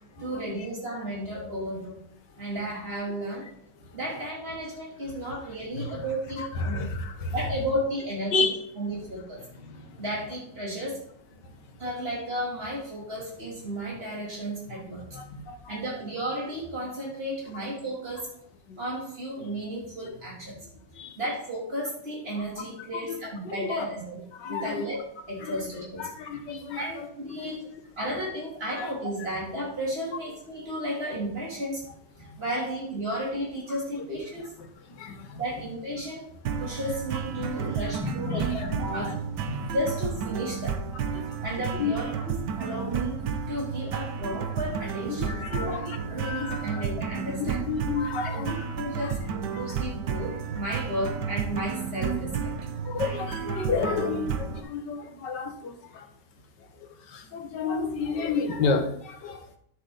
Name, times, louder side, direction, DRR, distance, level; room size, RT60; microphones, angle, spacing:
voice 1, 0.1-2.0 2.4-3.5 3.9-6.9 7.3-9.4 10.0-11.0 11.8-15.1 15.7-18.3 18.8-20.6 21.2-25.0 25.3-26.1 26.8-27.7 28.0-31.8 32.2-34.5 35.3-39.2 39.7-40.8 41.4-43.1 43.5-47.6 48.3-52.6, right 1 dB, 35° right, -4 dB, 3.3 m, -33 dB
voice 2, 6.4-7.3 8.3-8.5 9.5-10.0 11.4-11.6 15.1-15.8 18.7-18.8 20.9-21.2 22.3-22.7 22.9-23.2 23.5-23.8 24.3-24.8 25.4-25.6 26.0-27.1 28.0-28.2 28.7-28.9 32.2-32.7 34.9-35.4 37.4-37.7 38.0-39.2 39.4-39.7 41.1-41.4 41.8-41.9 42.6-42.9 45.1-46.8 47.4-48.7 49.0-49.1 49.5-49.7 52.8-56.1 56.6-59.6, left 4 dB, 90° left, 5 dB, 1.8 m, -32 dB
sound 1, 36.5-54.6, right 6 dB, 80° right, 1.5 m, -32 dB
10.5 x 7.3 x 4.0 m, 0.68 s
omnidirectional pair, 1.8 m